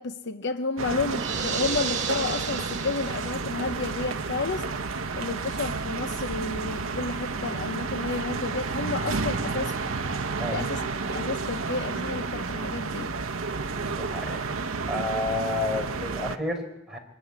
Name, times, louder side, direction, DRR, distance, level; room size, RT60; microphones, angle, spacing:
voice 1, 0.0-4.7 5.2-10.0 10.4-13.1, left 3 dB, 60° left, 0.9 m, -31 dB
sound 1, 0.8-16.4, right 4 dB, 85° right, 1.0 m, -31 dB
sound 2, 1.1-3.6, right 6 dB, 35° right, 1.9 m, -33 dB
voice 2, 13.7-14.6 14.9-17.0, left 2 dB, 5° right, 4.3 m, -31 dB
23.5 x 14.0 x 9.7 m
head